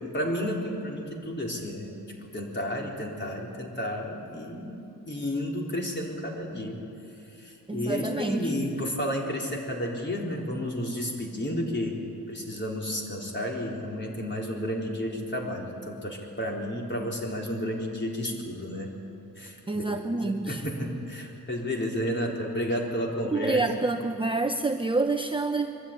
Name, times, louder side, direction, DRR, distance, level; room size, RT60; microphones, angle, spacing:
voice 1, 0.0-6.8 7.4-12.0 12.3-18.9 19.4-23.9, equal, 30° left, -1 dB, 3.9 m, -32 dB
voice 2, 7.7-8.5 19.7-20.6 23.2-25.8, right 3 dB, 15° right, 5 dB, 0.8 m, -27 dB
23.0 x 13.0 x 9.8 m, 2.7 s
cardioid pair, 95°, 36 cm